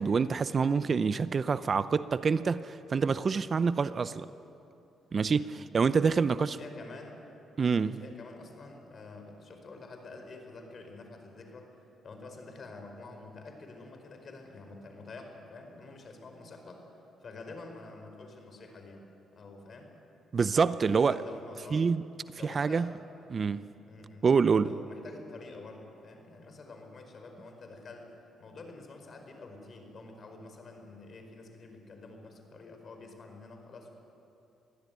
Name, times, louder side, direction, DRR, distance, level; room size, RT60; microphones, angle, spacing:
voice 1, 0.0-4.3 5.1-6.6 7.6-8.0 20.3-21.2 21.7-22.0 22.4-22.9 23.3-23.6 24.2-24.8, right 5 dB, 40° right, 0.6 m, -26 dB
voice 2, 5.2-5.7 6.2-7.2 7.7-11.7 12.0-16.9 17.2-19.0 19.3-19.9 20.8-21.9 22.3-23.2 23.8-24.3 24.6-28.1 28.4-33.9, left 3 dB, 45° left, 4.8 m, -48 dB
23.5 x 16.0 x 9.5 m
cardioid pair, 90°, 0 cm